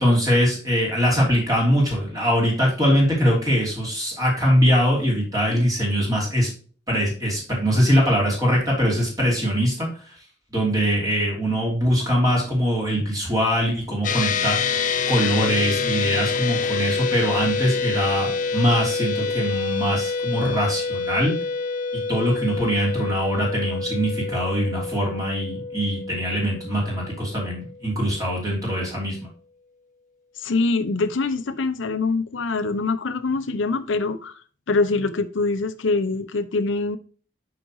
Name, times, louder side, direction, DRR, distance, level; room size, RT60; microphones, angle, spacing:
voice 1, 0.0-6.5 6.9-10.1 10.5-14.6 15.1-21.3 22.1-29.3, equal, 20° right, 3.2 m, -22 dB
sound 1, 14.0-27.7, left 5 dB, 45° left, 0.6 m, -27 dB
voice 2, 30.4-34.3 34.7-37.0, left 3 dB, 90° left, 0.7 m, -24 dB
6.3 x 5.9 x 3.0 m
head